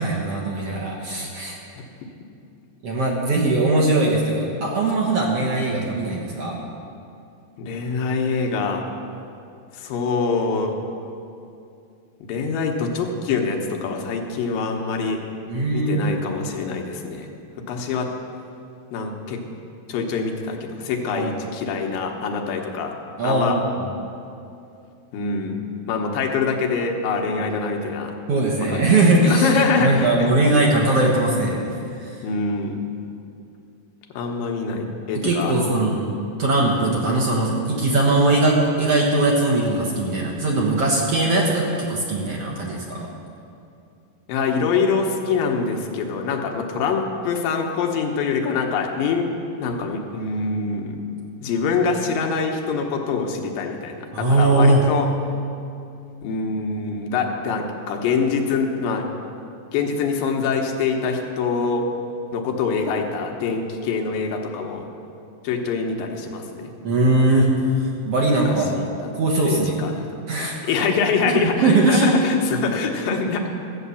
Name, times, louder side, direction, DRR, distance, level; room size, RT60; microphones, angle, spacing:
voice 1, 0.0-1.6 2.8-6.6 15.5-16.2 21.1-21.4 23.2-23.9 28.3-31.6 32.0-32.1 35.2-36.1 36.4-43.1 54.1-54.8 66.8-67.5 67.8-68.7 69.1-69.8 70.3-70.6 71.2-72.1, right 2 dB, 55° right, -2 dB, 1.9 m, -20 dB
voice 2, 7.6-8.8 9.7-10.8 12.2-15.2 15.7-17.3 17.7-18.1 18.9-19.4 19.9-22.9 23.2-23.6 25.1-28.1 28.7-30.4 32.2-32.7 34.1-35.8 44.3-49.3 49.6-51.0 51.4-55.1 56.2-59.1 59.7-61.9 62.3-64.9 65.4-66.7 68.3-69.1 69.4-70.1 70.7-73.5, left 5 dB, 80° left, 2 dB, 2.8 m, -24 dB
14.5 x 8.4 x 7.0 m, 2.6 s
omnidirectional pair, 4.0 m